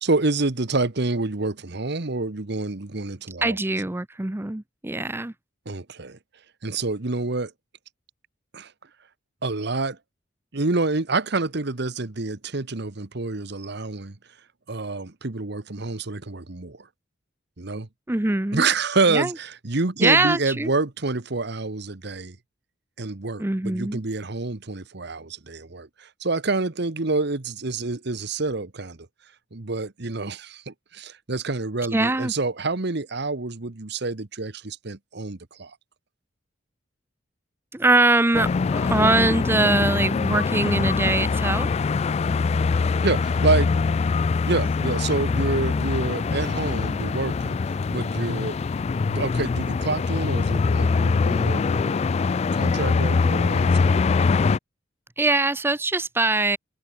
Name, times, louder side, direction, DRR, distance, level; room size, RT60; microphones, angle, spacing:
voice 1, 0.0-3.5 5.6-6.2 6.6-7.5 8.5-8.7 9.4-10.0 10.5-14.2 14.7-16.9 17.6-17.9 18.5-22.4 23.0-29.0 29.5-35.7 43.0-43.7 44.5-48.6 49.1-52.0 52.5-54.0, right 3 dB, 60° right, 1.3 m, -27 dB
voice 2, 3.4-5.3 18.1-18.7 19.1-19.3 20.0-20.7 23.4-24.0 31.9-32.3 37.7-41.7 55.2-56.6, right 2 dB, 10° right, 0.6 m, -22 dB
sound 1, 38.3-54.6, left 4 dB, 35° left, 0.3 m, -23 dB
head